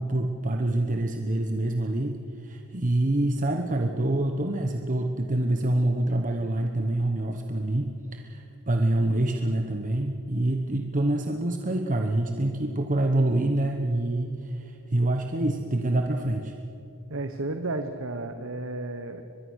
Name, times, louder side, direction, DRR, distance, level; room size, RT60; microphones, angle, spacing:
voice 1, 0.0-16.5, right 1 dB, 35° right, 4 dB, 1.1 m, -26 dB
voice 2, 17.1-19.2, right 2 dB, 65° right, 7 dB, 1.1 m, -32 dB
24.0 x 21.0 x 6.4 m, 2.9 s
head